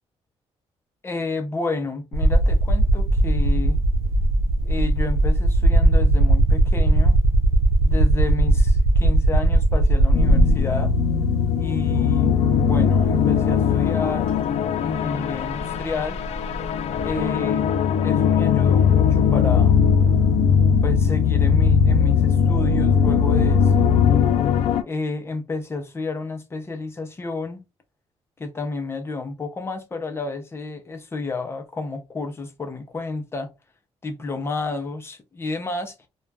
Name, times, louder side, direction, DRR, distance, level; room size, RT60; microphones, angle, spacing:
voice 1, 1.0-3.8 4.6-7.2 7.8-10.9 11.5-14.3 14.8-16.2 17.0-17.7 18.0-19.7 20.8-24.0 24.8-27.6 28.4-33.5 34.0-35.9, left 3 dB, 20° left, 0.6 m, -30 dB
sound 1, 2.1-10.9 12.0-12.1 14.3-14.4 14.6-17.2, right 1 dB, 75° right, 0.8 m, -19 dB
sound 2, 10.1-24.8, left 7 dB, 70° left, 0.4 m, -19 dB
2.4 x 2.2 x 3.2 m
cardioid pair, 135°, 11 cm